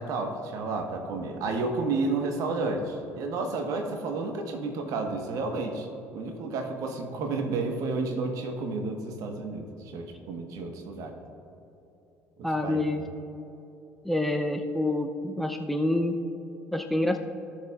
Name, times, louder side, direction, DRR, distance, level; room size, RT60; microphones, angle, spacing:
voice 1, 0.0-5.9 6.1-11.2 12.4-12.9, right 3 dB, 55° right, 4 dB, 1.2 m, -31 dB
voice 2, 12.4-13.0 14.0-16.1 16.7-17.2, left 1 dB, 5° left, 7 dB, 0.6 m, -27 dB
17.5 x 6.4 x 2.4 m, 2.9 s
figure-of-eight pair, 55°, 7 cm